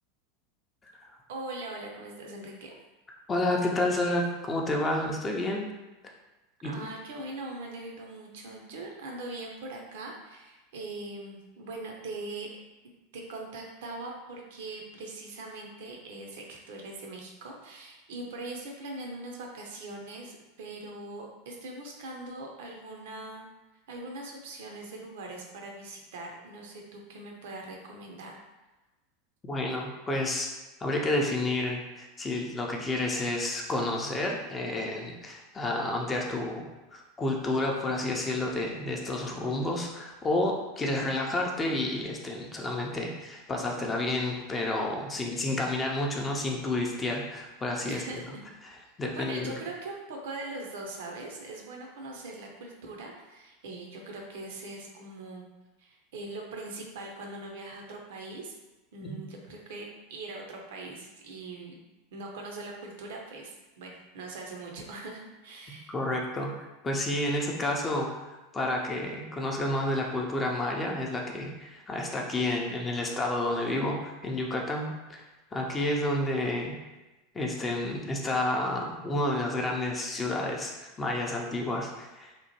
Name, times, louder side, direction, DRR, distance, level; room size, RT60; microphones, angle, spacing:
voice 1, 1.3-2.7 6.6-12.5 13.1-23.4 23.9-28.3 47.9-48.3 49.1-55.5 55.8-58.6 58.9-61.8 62.1-65.9, right 2 dB, 65° right, 0 dB, 0.5 m, -41 dB
voice 2, 3.3-5.7 6.6-6.7 29.5-30.5 30.8-48.2 49.0-49.5 59.0-59.2 65.9-68.1 68.5-75.2 75.5-76.7 77.3-82.3, left 1 dB, 20° left, 0 dB, 0.5 m, -30 dB
2.9 x 2.1 x 2.9 m, 1.1 s
figure-of-eight pair, 85°, 0 cm